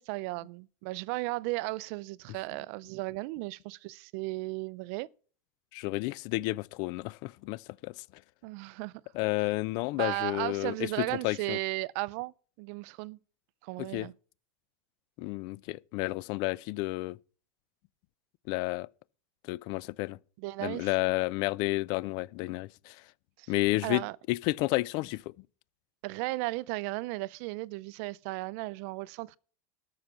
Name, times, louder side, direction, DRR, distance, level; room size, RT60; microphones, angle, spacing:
voice 1, 0.0-5.1 8.4-8.9 9.9-13.2 13.6-14.1 20.4-20.9 23.4-23.5 23.8-24.2 26.0-29.4, right 22 dB, 55° right, 0.4 m, -35 dB
voice 2, 5.7-8.0 9.1-11.6 13.8-14.1 15.2-17.2 18.5-18.9 19.5-20.2 20.6-23.0 23.5-24.0 24.3-25.3, left 21 dB, 50° left, 0.4 m, -31 dB
13.0 x 5.7 x 5.9 m
supercardioid pair, 140°, 9 cm